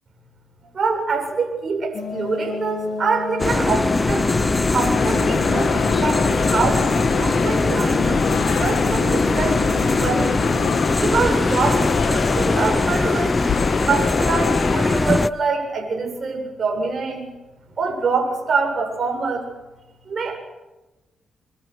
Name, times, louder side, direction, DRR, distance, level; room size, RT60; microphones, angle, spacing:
voice 1, 0.7-4.3 4.7-10.4 11.0-13.4 13.8-17.3 17.7-19.4 20.1-20.4, right 4 dB, 50° right, 2 dB, 7.7 m, -25 dB
sound 1, 1.9-10.8, left 6 dB, 55° left, 6.5 m, -31 dB
sound 2, 3.4-15.3, left 3 dB, 25° left, 0.9 m, -21 dB
sound 3, 4.9-15.0, left 8 dB, 80° left, 1.9 m, -27 dB
25.0 x 24.5 x 8.4 m, 1.1 s
cardioid pair, 80°, 0 cm